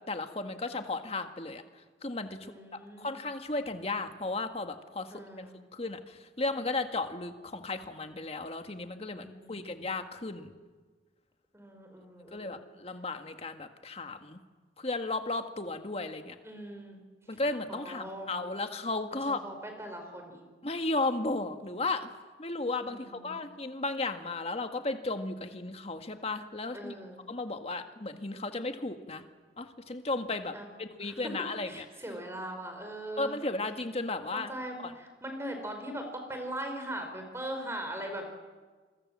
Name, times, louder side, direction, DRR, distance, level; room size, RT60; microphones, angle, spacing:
voice 1, 0.1-1.6 2.0-10.5 12.3-14.4 14.8-16.3 17.3-19.4 20.6-22.1 22.4-26.9 27.3-29.2 29.6-31.8 33.2-34.5 34.8-34.9, left 2 dB, 35° left, 7 dB, 1.7 m, -35 dB
voice 2, 2.4-3.1 5.1-5.5 9.1-9.7 11.5-12.6 16.4-17.0 17.7-18.3 19.1-20.4 22.9-23.4 26.7-27.2 30.5-30.6 31.1-31.2 31.6-33.3 34.3-38.3, right 1 dB, 15° right, 4 dB, 4.8 m, -40 dB
27.5 x 23.0 x 7.5 m, 1.4 s
head